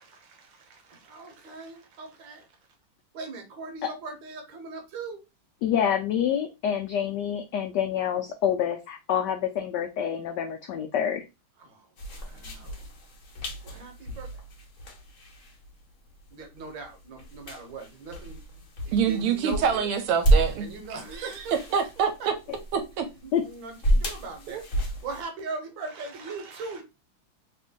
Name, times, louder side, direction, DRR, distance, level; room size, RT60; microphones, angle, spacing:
voice 1, 0.0-2.5 3.1-5.2 11.6-12.9 13.6-14.4 16.3-19.9 20.6-21.8 22.2-22.3 23.2-26.8, right 4 dB, 65° right, 1.5 m, -40 dB
voice 2, 5.6-11.2 23.3-23.4, left 9 dB, 90° left, 0.9 m, -27 dB
sound 1, 12.0-25.2, right 1 dB, 55° left, 0.9 m, -31 dB
voice 3, 18.9-20.7 21.7-22.3 22.7-23.0 24.5-24.6, right 7 dB, 85° right, 1.5 m, -25 dB
3.4 x 2.5 x 3.6 m
omnidirectional pair, 2.4 m